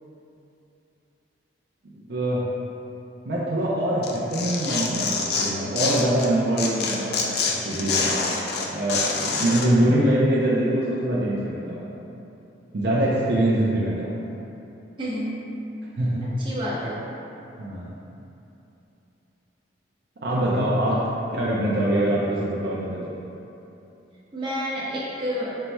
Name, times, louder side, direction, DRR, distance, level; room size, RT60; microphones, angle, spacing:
voice 1, 1.9-2.4 3.3-7.3 7.6-8.1 8.7-11.8 12.7-14.2 16.0-16.3 17.6-17.9 20.2-21.0 21.3-23.0, right 1 dB, 60° right, -7 dB, 0.5 m, -23 dB
Tearing, 4.0-6.3 6.6-9.7, left 4 dB, 55° left, 0.4 m, -26 dB
voice 2, 15.0-15.4 16.2-17.0 24.3-25.5, equal, 25° right, -9 dB, 0.8 m, -29 dB
4.5 x 4.1 x 2.2 m, 2.8 s
head